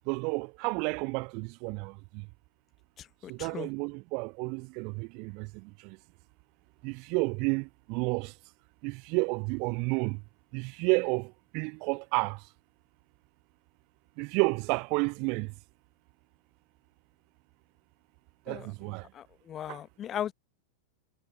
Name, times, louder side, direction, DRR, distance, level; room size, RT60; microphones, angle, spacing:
voice 1, 0.1-2.3 3.3-6.0 6.8-8.3 8.8-10.2 10.5-12.4 14.2-15.5 18.5-19.1 19.7-19.8, right 32 dB, 45° right, 0.5 m, -31 dB
voice 2, 3.0-3.7 18.5-18.7 19.1-20.3, left 10 dB, 30° left, 0.9 m, -38 dB
figure-of-eight pair, 90°, 0 cm